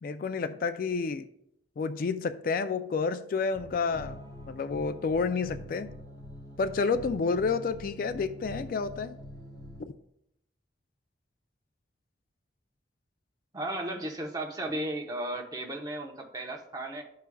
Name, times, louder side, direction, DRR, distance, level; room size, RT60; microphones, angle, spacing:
voice 1, 0.0-1.3 1.8-4.2 4.5-5.9 6.6-9.2 9.8-9.9, left 4 dB, 50° left, 0.3 m, -30 dB
sound 1, 3.5-9.8, left 1 dB, 20° left, 1.1 m, -45 dB
voice 2, 13.5-17.0, right 1 dB, 20° right, 0.8 m, -35 dB
13.0 x 4.7 x 2.3 m
head